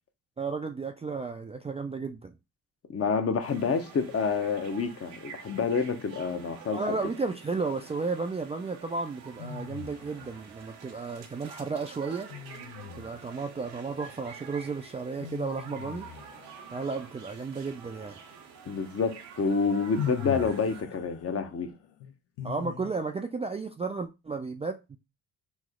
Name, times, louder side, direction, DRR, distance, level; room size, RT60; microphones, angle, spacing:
voice 1, 0.4-2.3 6.7-12.3 13.0-16.1 16.7-18.1 22.4-25.0, right 4 dB, 15° right, 0.3 m, -33 dB
voice 2, 2.9-7.0 18.7-21.7, left 5 dB, 35° left, 0.7 m, -28 dB
sound 1, 3.4-20.8, right 7 dB, 90° right, 0.7 m, -48 dB
sound 2, 9.4-10.5 12.3-13.4 15.2-17.1 19.0-19.1 19.9-23.2, left 9 dB, 85° left, 0.6 m, -40 dB
3.1 x 2.0 x 3.5 m
hypercardioid pair, 50°, 40 cm